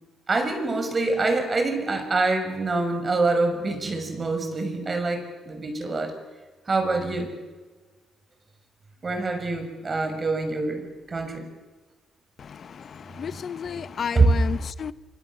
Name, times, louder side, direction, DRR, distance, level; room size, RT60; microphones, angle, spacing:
voice 1, 0.3-6.1 6.7-7.3 9.0-11.4 14.1-14.3, right 3 dB, 35° right, 6.6 m, -25 dB
voice 2, 12.4-14.9, left 7 dB, 50° left, 0.8 m, -32 dB
26.5 x 25.5 x 7.4 m
cardioid pair, 90°, 0 cm